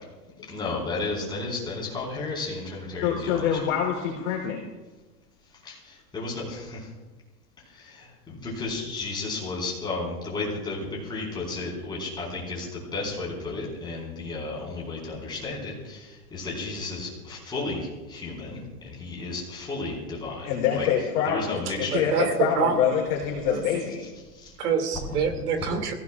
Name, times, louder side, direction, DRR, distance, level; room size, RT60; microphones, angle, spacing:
voice 1, 0.4-3.6 5.6-6.9 7.6-20.5 20.7-20.9 21.2-22.1 24.3-24.5 25.6-25.7, left 3 dB, 10° left, -5 dB, 4.7 m, -33 dB
voice 2, 3.0-4.6 20.4-21.6 21.9-22.1 22.4-24.0, left 8 dB, 50° left, -2 dB, 3.8 m, -25 dB
voice 3, 21.7-23.0 23.4-23.6 24.6-25.9, right 6 dB, 70° right, 4 dB, 2.7 m, -26 dB
28.5 x 16.5 x 2.5 m, 1.2 s
supercardioid pair, 165°, 48 cm